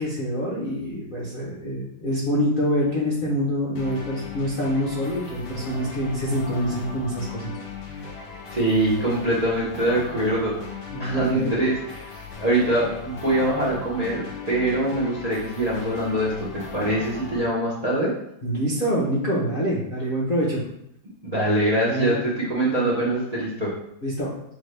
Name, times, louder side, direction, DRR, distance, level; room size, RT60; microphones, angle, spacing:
voice 1, 0.0-7.5 10.9-11.5 18.4-20.6 21.9-22.1 24.0-24.3, equal, 50° left, -6 dB, 0.6 m, -25 dB
sound 1, 3.8-17.5, left 5 dB, 70° left, 1.4 m, -38 dB
voice 2, 8.5-10.5 11.0-18.1 21.2-23.7, right 1 dB, 80° right, -6 dB, 0.3 m, -24 dB
6.1 x 2.2 x 3.2 m, 0.76 s
omnidirectional pair, 2.2 m